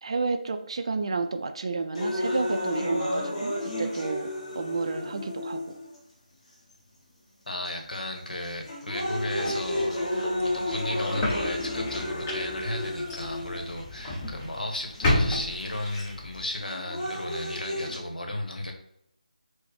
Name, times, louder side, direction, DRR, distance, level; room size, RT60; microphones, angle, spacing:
voice 1, 0.0-5.8, right 4 dB, 40° right, 7 dB, 0.3 m, -31 dB
sound 1, 1.9-6.0 6.7-6.8 7.6-8.0 8.4-14.0 14.9-15.0 16.4-18.0, left 1 dB, 35° left, 1.3 m, -32 dB
voice 2, 7.5-18.7, left 1 dB, 85° left, 3 dB, 0.9 m, -34 dB
Bowed string instrument, 8.9-13.2, left 1 dB, 60° left, 0.8 m, -38 dB
sound 2, 8.9-16.4, left 1 dB, 15° left, 0.5 m, -33 dB
4.8 x 2.0 x 3.1 m, 0.75 s
figure-of-eight pair, 170°, 4 cm